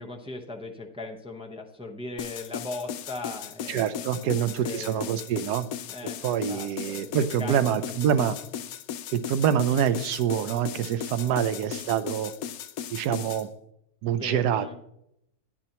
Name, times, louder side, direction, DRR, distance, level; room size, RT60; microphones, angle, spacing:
voice 1, 0.0-5.2 5.9-7.1 7.4-8.3 11.3-11.4 14.1-14.8, left 2 dB, 5° right, 1 dB, 0.6 m, -39 dB
sound 1, 2.2-13.4, left 9 dB, 70° left, 1.0 m, -37 dB
voice 2, 3.7-5.7 6.2-8.4 9.1-12.3 12.9-13.5 14.0-14.8, right 9 dB, 85° right, 13 dB, 1.2 m, -26 dB
10.0 x 9.8 x 2.9 m, 0.76 s
omnidirectional pair, 1.7 m